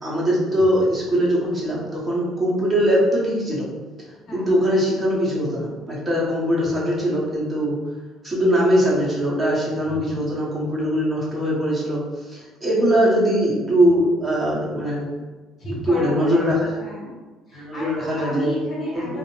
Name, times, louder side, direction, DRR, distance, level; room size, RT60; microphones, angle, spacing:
voice 1, 0.0-3.7 4.3-7.8 8.2-15.1 15.9-16.8 17.5-18.5 18.9-19.1, equal, 25° right, -6 dB, 0.9 m, -21 dB
voice 2, 4.3-4.6 9.9-10.1 15.6-17.1 17.5-19.2, equal, 40° left, -4 dB, 1.0 m, -32 dB
2.6 x 2.0 x 3.0 m, 1.3 s
cardioid pair, 95°, 0 cm